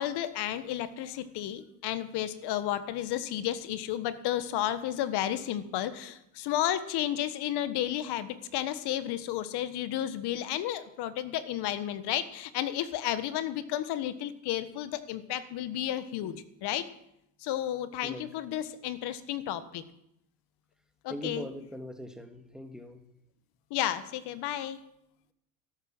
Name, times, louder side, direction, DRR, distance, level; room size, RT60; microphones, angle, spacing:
voice 1, 0.0-16.3 16.6-16.9 17.4-19.8 21.0-21.5 23.7-24.8, left 12 dB, 55° left, 12 dB, 1.5 m, -32 dB
voice 2, 21.1-23.1, equal, ahead, 6 dB, 1.9 m, -41 dB
13.0 x 12.5 x 6.2 m, 0.79 s
supercardioid pair, 95°, 48 cm